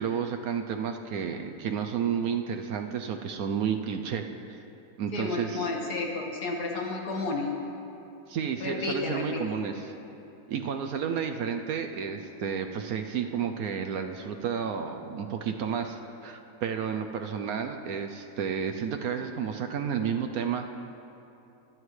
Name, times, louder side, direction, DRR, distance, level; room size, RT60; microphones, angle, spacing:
voice 1, 0.0-4.6 5.0-5.7 8.3-9.9 10.5-20.7, right 7 dB, 70° right, 6 dB, 1.0 m, -31 dB
voice 2, 5.1-7.5 8.6-9.4, left 3 dB, 70° left, 0 dB, 2.0 m, -31 dB
23.5 x 9.1 x 3.2 m, 2.8 s
omnidirectional pair, 1.8 m